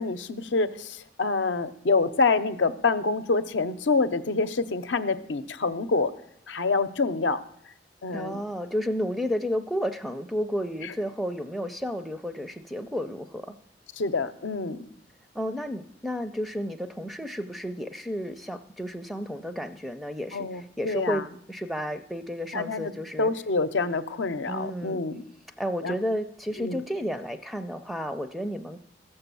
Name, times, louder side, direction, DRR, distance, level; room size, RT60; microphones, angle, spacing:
voice 1, 0.0-6.1 6.5-7.4 8.0-8.4 10.8-10.9 14.0-14.9 20.3-21.2 22.5-22.9 23.2-25.2 25.8-26.0 26.6-26.8, left 4 dB, 85° left, 10 dB, 0.7 m, -26 dB
voice 2, 8.1-13.5 15.3-21.2 21.5-23.3 24.5-25.0 25.6-28.8, equal, ahead, 8 dB, 0.4 m, -32 dB
15.5 x 6.9 x 6.8 m, 0.69 s
head